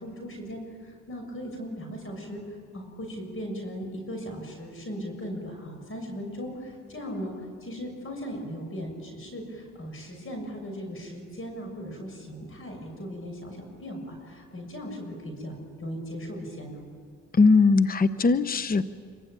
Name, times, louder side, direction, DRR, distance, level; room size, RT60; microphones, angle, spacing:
voice 1, 0.0-16.8, equal, 45° left, 3 dB, 6.6 m, -38 dB
voice 2, 17.3-18.9, left 4 dB, 30° left, 13 dB, 0.9 m, -20 dB
26.5 x 25.0 x 9.0 m, 2.2 s
cardioid pair, 90°, 30 cm